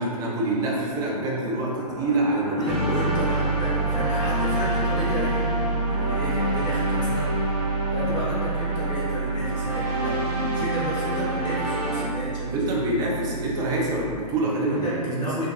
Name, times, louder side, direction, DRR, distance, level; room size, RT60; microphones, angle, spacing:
voice 1, 0.0-2.8 12.5-15.3, right 2 dB, 20° right, -4 dB, 0.7 m, -26 dB
sound 1, 1.1-9.1, equal, 50° left, 1.5 m, -41 dB
voice 2, 2.5-5.5 5.9-7.4 7.9-12.6 14.7-15.5, equal, 20° left, -9 dB, 1.2 m, -32 dB
Piano, 2.7-14.0, right 4 dB, 75° left, 0.5 m, -29 dB
sound 2, 2.7-12.1, equal, 85° right, 1.2 m, -29 dB
5.1 x 2.5 x 3.0 m, 2.2 s
figure-of-eight pair, 110°, 21 cm